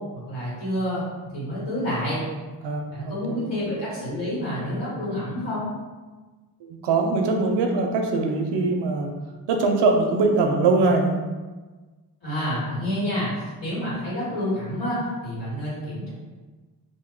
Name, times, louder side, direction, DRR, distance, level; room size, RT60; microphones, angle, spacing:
voice 1, 0.3-1.1 1.3-2.2 2.9-5.7 12.2-13.3 13.6-16.1, equal, 80° left, -9 dB, 1.5 m, -28 dB
voice 2, 2.6-3.4 6.6-9.1 9.5-11.2, right 3 dB, 80° right, 3 dB, 0.5 m, -22 dB
2.5 x 2.1 x 3.7 m, 1.3 s
cardioid pair, 70°, 41 cm